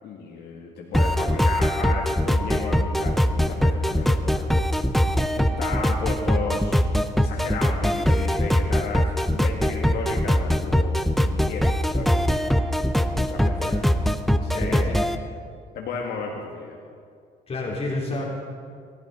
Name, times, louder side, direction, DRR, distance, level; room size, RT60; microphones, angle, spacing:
voice 1, 0.0-4.7 5.3-6.8 7.2-11.0 11.2-11.7 11.9-12.1 13.2-13.6 14.4-15.0 15.7-16.8, left 4 dB, 70° left, -1 dB, 2.0 m, -33 dB
sound 1, 0.9-15.2, equal, ahead, 0.7 m, -22 dB
voice 2, 13.5-13.8 14.5-15.0 17.5-18.2, left 2 dB, 35° left, -3 dB, 3.1 m, -30 dB
20.5 x 14.5 x 4.0 m, 2.2 s
cardioid pair, 110°, 17 cm